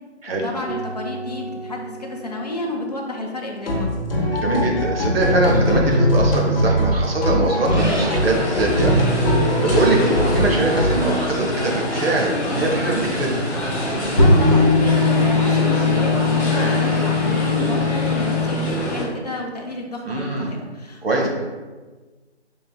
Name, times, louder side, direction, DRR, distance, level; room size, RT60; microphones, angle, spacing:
voice 1, 0.3-4.1 14.2-21.3, left 2 dB, 35° left, 0 dB, 0.6 m, -31 dB
sound 1, 0.6-3.3 4.2-8.3 8.6-13.1 13.6-13.7 14.0-18.5, left 2 dB, 20° right, 0.6 m, -22 dB
sound 2, 3.6-11.1, left 1 dB, 50° left, 1.0 m, -23 dB
voice 2, 4.3-9.0 9.6-13.4 20.0-20.5 21.0-21.3, right 2 dB, 55° right, -1 dB, 1.1 m, -22 dB
sound 3, 7.8-19.0, equal, 15° left, 1.4 m, -26 dB
5.5 x 3.8 x 2.3 m, 1.3 s
figure-of-eight pair, 160°, 35 cm